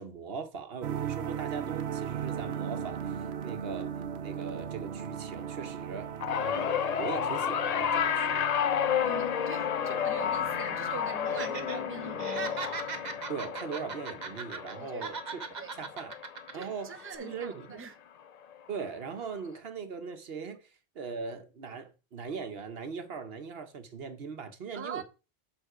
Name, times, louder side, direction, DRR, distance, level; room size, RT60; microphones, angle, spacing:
voice 1, 0.0-6.1 6.4-6.7 7.0-8.4 13.3-16.1 16.5-17.8 18.7-25.0, right 5 dB, 70° right, 1.2 m, -40 dB
sound 1, 0.8-13.6, right 8 dB, 90° right, 1.0 m, -39 dB
sound 2, 6.2-16.6 17.0-17.4 18.5-18.6, left 8 dB, 50° left, 0.5 m, -31 dB
voice 2, 9.0-12.7 14.8-15.1 15.6-15.8 16.5-17.5 17.8-17.9 24.7-25.0, right 5 dB, 15° right, 0.7 m, -43 dB
Laughter, 11.3-11.8 12.1-14.8 15.0-16.6 17.0-17.2, right 5 dB, 45° right, 1.0 m, -39 dB
11.0 x 3.9 x 5.0 m
omnidirectional pair, 1.1 m